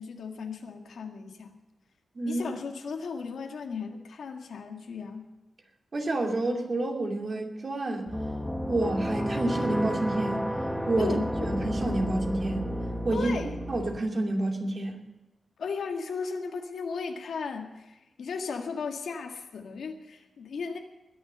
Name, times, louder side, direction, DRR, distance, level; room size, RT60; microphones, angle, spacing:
voice 1, 0.0-1.6 2.3-5.3 11.0-11.5 13.1-13.5 15.6-20.8, left 5 dB, 90° left, 1.8 m, -36 dB
voice 2, 5.9-8.1 8.7-10.5 10.9-12.7 13.0-13.3 13.7-15.0, right 2 dB, 40° right, 2.6 m, -29 dB
sound 1, 8.1-14.0, equal, 5° left, 1.3 m, -32 dB
20.5 x 7.2 x 6.7 m
wide cardioid pair, 120°, 0 cm